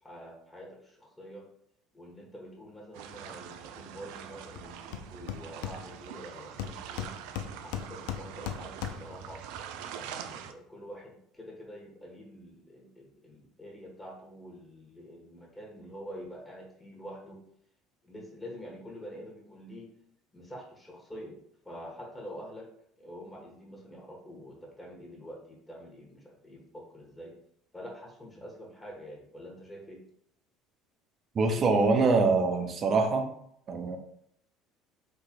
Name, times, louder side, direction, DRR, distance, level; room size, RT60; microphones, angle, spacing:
voice 1, 0.0-1.4 1.9-7.1 7.6-9.4 9.9-17.4 18.0-19.9 20.3-21.4 21.6-22.7 23.0-27.3 27.7-30.0, equal, 15° left, -1 dB, 1.5 m, -46 dB
sound 1, 2.9-10.5, right 9 dB, 65° right, 0.3 m, -44 dB
Hammer, 4.5-4.6 4.9-6.2 6.6-9.2, left 9 dB, 70° left, 0.3 m, -38 dB
voice 2, 31.3-33.3 33.7-34.0, right 3 dB, 40° right, 5 dB, 0.7 m, -24 dB
4.6 x 3.1 x 2.4 m, 0.70 s
hypercardioid pair, 65°, 0 cm